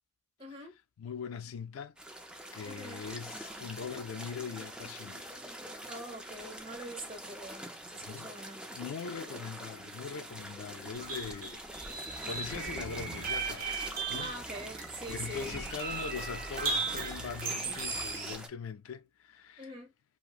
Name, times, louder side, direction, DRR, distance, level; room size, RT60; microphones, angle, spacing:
voice 1, 0.4-0.7 2.6-3.1 5.8-7.6 7.9-8.6 11.9-12.0 14.2-15.6 19.6-19.9, equal, 25° right, 1.1 m, -44 dB
voice 2, 1.0-2.0 2.5-5.3 8.0-8.3 8.7-14.3 15.1-19.7, left 6 dB, 80° left, 0.3 m, -42 dB
sound 1, 2.0-18.5, right 1 dB, 5° right, 0.4 m, -45 dB
sound 2, 10.9-18.4, right 4 dB, 45° right, 0.7 m, -37 dB
2.9 x 2.4 x 2.4 m
head